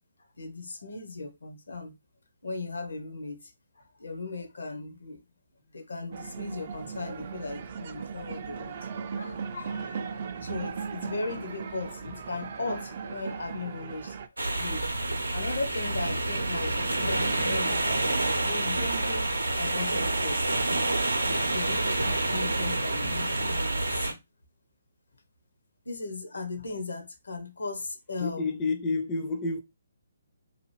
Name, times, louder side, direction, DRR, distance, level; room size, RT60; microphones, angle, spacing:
voice 1, 0.4-1.9 2.4-5.2 5.7-8.8 9.1-14.3 14.5-20.6 21.5-24.2 25.8-28.5, left 3 dB, 75° left, 0.8 m, -37 dB
sound 1, 6.1-14.3, right 6 dB, 45° right, 0.4 m, -37 dB
sound 2, 14.4-24.1, right 2 dB, 90° right, 0.6 m, -28 dB
voice 2, 28.2-29.6, left 3 dB, 20° left, 0.4 m, -29 dB
2.8 x 2.4 x 3.0 m
figure-of-eight pair, 145°, 0 cm